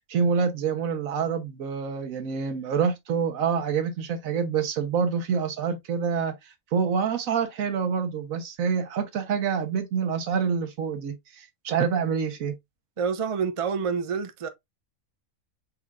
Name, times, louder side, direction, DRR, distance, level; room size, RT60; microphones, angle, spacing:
voice 1, 0.1-6.4 6.7-12.5, right 6 dB, 70° right, 1.3 m, -27 dB
voice 2, 13.0-14.5, right 6 dB, 40° right, 0.4 m, -27 dB
4.7 x 4.4 x 2.4 m
omnidirectional pair, 1.5 m